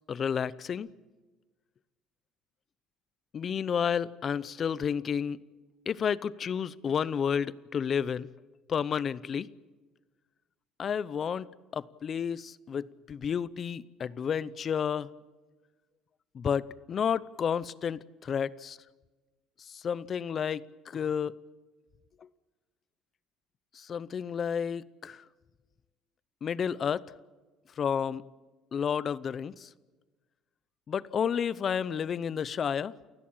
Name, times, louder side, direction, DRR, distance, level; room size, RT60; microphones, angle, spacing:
voice 1, 0.1-0.9 3.3-5.4 5.9-8.3 8.7-9.5 10.8-11.5 11.7-15.1 16.3-18.8 19.7-21.3 23.7-25.2 26.4-27.0 27.8-28.2 28.7-29.7 30.9-32.9, left 7 dB, 35° left, 0.7 m, -31 dB
29.0 x 16.5 x 8.9 m
cardioid pair, 130°, 0 cm